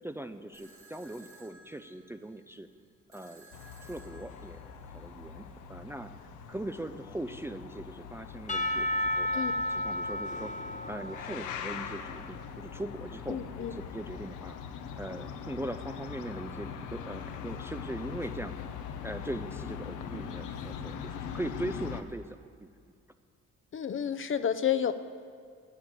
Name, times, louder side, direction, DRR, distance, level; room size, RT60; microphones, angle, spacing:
voice 1, 0.0-2.7 3.1-3.5 3.8-6.1 6.5-14.6 15.0-18.6 19.0-22.7, right 1 dB, 10° right, 8 dB, 0.4 m, -40 dB
sound 1, 0.5-5.6, right 2 dB, 75° right, 2.7 m, -58 dB
sound 2, 3.5-22.0, left 7 dB, 80° left, 0.8 m, -42 dB
Percussion / Church bell, 8.5-12.6, left 1 dB, 25° left, 1.0 m, -33 dB
voice 2, 13.3-13.7 23.7-24.9, left 9 dB, 40° left, 11 dB, 0.6 m, -30 dB
11.0 x 7.0 x 9.0 m, 2.2 s
cardioid pair, 90°, 30 cm